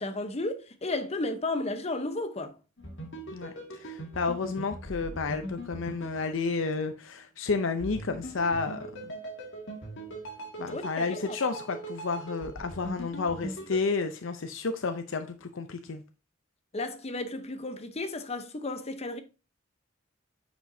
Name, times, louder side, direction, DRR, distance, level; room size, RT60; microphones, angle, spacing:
voice 1, 0.0-2.5 10.7-11.4 16.7-19.2, left 2 dB, 30° left, 0.8 m, -33 dB
sound 1, 2.8-7.1 7.8-13.9, right 1 dB, 60° left, 1.9 m, -41 dB
voice 2, 3.3-9.1 10.6-16.0, left 4 dB, 80° left, 0.6 m, -31 dB
9.0 x 5.1 x 2.7 m
head